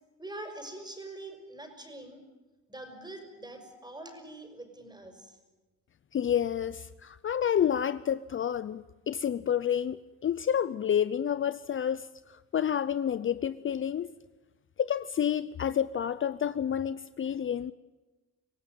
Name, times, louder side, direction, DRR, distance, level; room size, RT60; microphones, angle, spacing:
voice 1, 0.2-2.2 2.7-5.4, right 2 dB, 15° right, 6.1 m, -44 dB
voice 2, 6.1-14.1 14.8-17.7, left 9 dB, 40° left, 0.7 m, -29 dB
26.0 x 16.5 x 9.4 m
cardioid pair, 90°, 30 cm